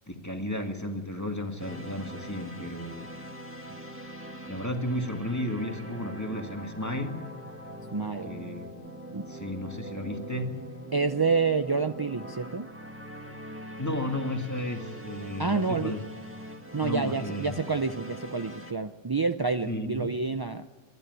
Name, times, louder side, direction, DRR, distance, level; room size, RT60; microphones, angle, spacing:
voice 1, 0.1-3.1 4.5-7.3 8.2-8.8 9.3-10.7 13.8-16.0 16.8-17.6 19.7-20.4, left 1 dB, 15° left, 4 dB, 1.9 m, -33 dB
sound 1, 1.6-18.7, right 1 dB, 10° right, 1.8 m, -42 dB
voice 2, 7.9-8.3 9.1-9.2 10.9-12.7 15.4-15.9 16.7-20.7, right 4 dB, 35° right, 8 dB, 0.3 m, -28 dB
25.0 x 12.0 x 9.5 m, 1.3 s
omnidirectional pair, 1.3 m